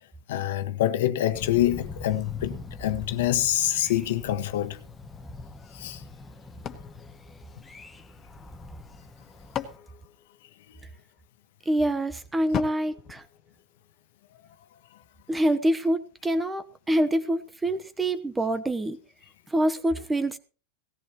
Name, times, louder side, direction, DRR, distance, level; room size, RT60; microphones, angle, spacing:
voice 1, 0.3-4.8 5.7-6.0 10.7-10.8, left 13 dB, 75° left, 1.5 m, -26 dB
Thunder, 1.3-9.8, left 3 dB, 10° left, 1.5 m, -43 dB
sound 1, 6.6-8.2 9.0-11.0 12.5-14.1, left 9 dB, 30° left, 1.7 m, -38 dB
voice 2, 11.7-13.2 15.3-19.0 19.5-20.4, right 1 dB, 10° right, 1.0 m, -26 dB
18.0 x 14.5 x 3.1 m
supercardioid pair, 135°, 0 cm